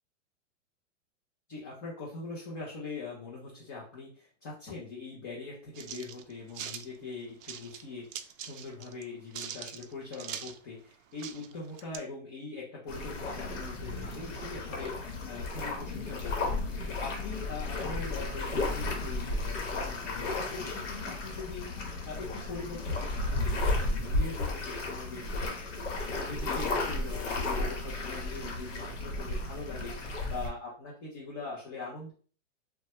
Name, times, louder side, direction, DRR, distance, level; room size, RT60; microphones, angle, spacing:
voice 1, 1.5-21.7 22.0-25.7 26.1-30.0 30.3-32.1, left 3 dB, 20° left, -6 dB, 0.3 m, -42 dB
sound 1, 5.7-6.9 7.4-7.8 8.1-9.0 9.3-10.6 10.9-11.0 11.2-12.0, right 9 dB, 85° right, 0.5 m, -42 dB
sound 2, 12.9-30.5, left 2 dB, 75° left, 1.0 m, -33 dB
3.1 x 2.2 x 2.8 m, 0.41 s
supercardioid pair, 160°, 38 cm